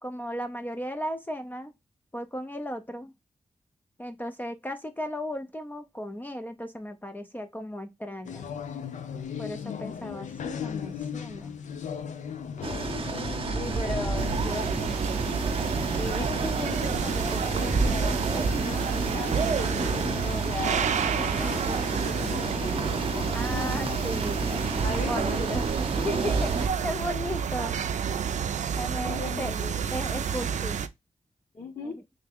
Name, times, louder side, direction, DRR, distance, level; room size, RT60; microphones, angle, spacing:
voice 1, 0.0-1.7 2.1-3.1 4.0-8.5 9.4-11.6 15.8-16.2 23.3-24.4 25.0-25.6 26.0-27.7 28.7-29.5 29.9-30.8 31.8-31.9, equal, 15° left, 0.5 m, -35 dB
sound 1, 8.2-25.1, left 7 dB, 85° left, 0.5 m, -38 dB
sound 2, 12.6-26.7, right 3 dB, 45° right, 0.8 m, -30 dB
voice 2, 13.5-15.5 16.0-22.7 24.8-25.7 28.9-29.8 31.5-32.0, left 3 dB, 45° left, 1.1 m, -38 dB
sound 3, 14.2-30.9, right 7 dB, 75° right, 0.4 m, -30 dB
3.5 x 3.3 x 3.4 m
wide cardioid pair, 100°, 12 cm